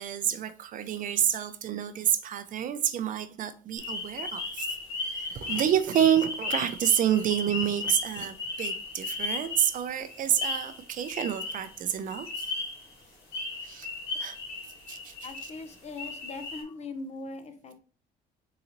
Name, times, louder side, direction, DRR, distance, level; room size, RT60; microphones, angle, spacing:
voice 1, 0.0-4.7 5.1-12.5 13.6-13.9 14.2-14.4 14.9-15.1, right 10 dB, 50° right, 0.5 m, -28 dB
sound 1, 3.8-11.8 12.1-12.9 13.3-15.7 16.0-16.6, left 3 dB, 80° left, 1.7 m, -35 dB
voice 2, 15.2-17.8, left 3 dB, 40° left, 0.7 m, -40 dB
3.9 x 3.8 x 3.0 m
cardioid pair, 110°, 17 cm